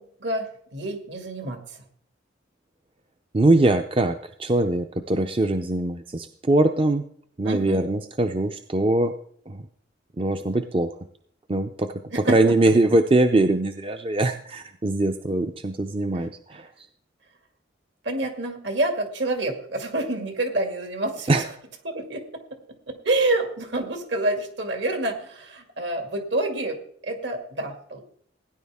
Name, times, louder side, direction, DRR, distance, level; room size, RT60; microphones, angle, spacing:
voice 1, 0.0-1.8 7.4-7.8 12.1-12.7 16.1-16.3 18.0-21.4 21.8-22.4 22.9-26.8 27.0-28.0, right 2 dB, 70° right, 4 dB, 2.3 m, -28 dB
voice 2, 3.3-7.0 7.4-9.1 9.5-9.6 10.2-10.9 11.5-16.7 21.3-21.4, right 2 dB, 30° right, 8 dB, 0.5 m, -22 dB
17.0 x 10.0 x 3.6 m, 0.62 s
head